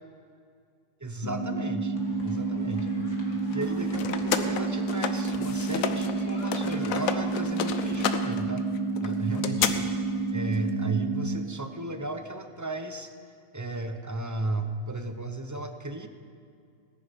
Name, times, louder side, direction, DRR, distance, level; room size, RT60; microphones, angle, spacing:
voice 1, 1.0-2.0 2.2-2.9 3.5-8.6 9.0-9.8 10.3-13.1 13.5-16.1, right 2 dB, 20° right, 7 dB, 0.5 m, -34 dB
sound 1, 1.2-11.2, right 3 dB, 30° left, 2.9 m, -30 dB
sound 2, 1.9-8.1, left 2 dB, 65° left, 2.0 m, -47 dB
sound 3, 3.5-6.1 6.4-9.7, left 8 dB, 85° left, 1.2 m, -31 dB
18.5 x 10.5 x 5.2 m, 2.3 s
omnidirectional pair, 1.4 m